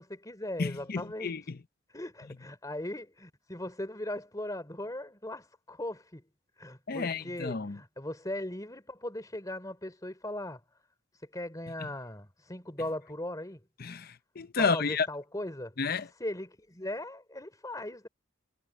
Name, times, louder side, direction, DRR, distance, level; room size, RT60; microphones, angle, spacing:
voice 1, 0.0-1.3 1.9-6.3 6.6-10.6 11.3-13.6 14.6-15.7 16.2-18.1, left 1 dB, 15° left, 3.2 m, -38 dB
voice 2, 0.6-1.6 6.9-7.8 11.8-11.9 13.8-15.1 15.8-16.1, left 4 dB, 45° left, 0.7 m, -31 dB
head